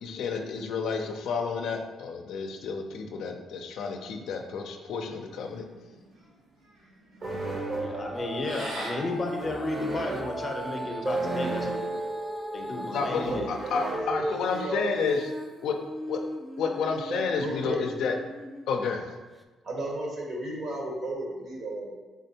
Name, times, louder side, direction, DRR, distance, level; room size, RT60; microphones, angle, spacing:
voice 1, 0.0-5.6 12.9-15.2 15.6-15.8 16.1-16.2 16.6-18.2 18.7-19.0, left 5 dB, 80° left, 4 dB, 0.4 m, -30 dB
sound 1, 5.1-10.9, right 1 dB, 85° right, 1.3 m, -44 dB
sound 2, 7.2-14.9, right 2 dB, 40° right, 0.7 m, -35 dB
voice 2, 7.8-11.8 12.5-13.4, left 2 dB, 35° left, 2 dB, 0.6 m, -33 dB
Female singing, 8.1-14.1 14.5-18.8 19.4-19.5, equal, ahead, 0.3 m, -40 dB
voice 3, 13.1-13.4 13.8-14.9 17.1-17.8 19.6-21.9, right 2 dB, 60° right, -1 dB, 1.0 m, -34 dB
3.7 x 3.3 x 2.8 m, 1.3 s
cardioid pair, 90°, 0 cm